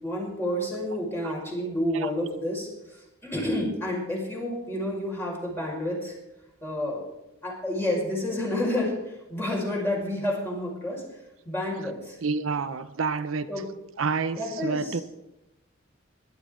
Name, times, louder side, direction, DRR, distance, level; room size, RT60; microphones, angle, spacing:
voice 1, 0.0-6.1 6.6-7.1 7.4-11.0 11.4-12.2 13.5-13.7 14.3-15.0, left 1 dB, 10° left, -3 dB, 5.4 m, -30 dB
voice 2, 12.2-13.5 14.0-15.0, right 4 dB, 90° right, 11 dB, 0.7 m, -28 dB
20.5 x 11.5 x 3.8 m, 0.93 s
head